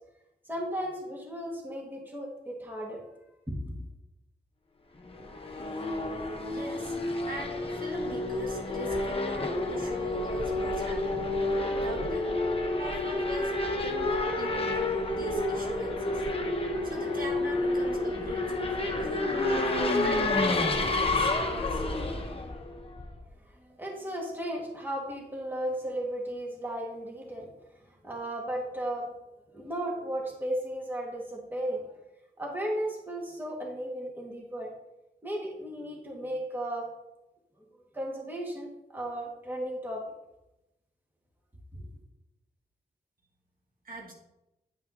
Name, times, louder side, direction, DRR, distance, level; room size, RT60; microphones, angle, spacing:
voice 1, 0.4-3.0 3.5-3.8 23.4-27.5 27.8-29.1 29.5-32.0 32.4-34.7 35.2-36.9 37.9-40.0 41.8-41.9, right 1 dB, 10° right, -2 dB, 1.7 m, -35 dB
Race car auto racing / Accelerating revving vroom, 5.1-23.2, left 2 dB, 35° left, 0.9 m, -29 dB
voice 2, 6.5-7.0 7.3-11.3 11.7-12.3 12.8-16.2 16.8-20.4 20.8-21.8 43.8-44.1, right 1 dB, 55° right, -1 dB, 1.4 m, -41 dB
9.7 x 5.5 x 2.8 m, 0.92 s
wide cardioid pair, 115°, 17 cm